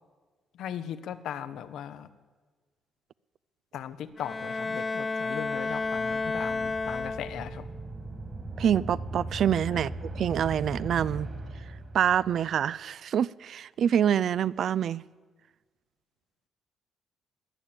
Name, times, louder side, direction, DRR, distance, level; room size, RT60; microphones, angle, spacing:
voice 1, 0.5-2.1 3.7-7.6 9.7-9.9, left 9 dB, 80° left, 0.8 m, -38 dB
Bowed string instrument, 4.2-7.7, left 3 dB, 30° left, 0.6 m, -31 dB
sound 1, 5.5-12.4, right 2 dB, 50° right, 2.4 m, -39 dB
voice 2, 8.6-9.9 10.2-11.3 11.9-15.0, right 9 dB, 65° right, 0.4 m, -26 dB
20.0 x 7.4 x 8.7 m
cardioid pair, 90°, 0 cm